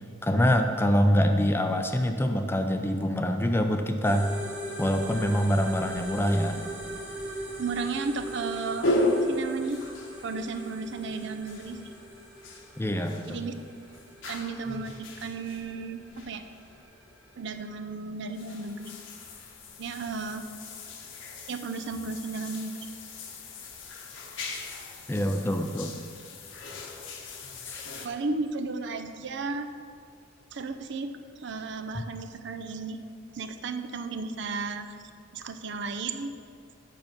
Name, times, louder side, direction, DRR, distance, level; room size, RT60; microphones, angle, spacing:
voice 1, 0.2-4.3 4.8-6.6 12.8-13.5 25.1-25.9 27.7-27.8 31.9-32.0, equal, 10° left, 6 dB, 0.4 m, -25 dB
sound 1, 4.0-17.8, right 1 dB, 5° right, 1.1 m, -40 dB
voice 2, 7.6-9.8 10.2-11.9 13.3-13.5 14.3-16.4 17.4-18.9 19.8-20.5 21.5-22.7 28.0-29.7 30.5-33.0 33.3-34.9 35.3-36.3, right 4 dB, 60° right, 9 dB, 0.5 m, -34 dB
sound 2, 8.8-16.8 17.5-17.9 18.3-28.1, left 1 dB, 65° left, 1.0 m, -36 dB
9.0 x 5.9 x 5.2 m, 2.3 s
head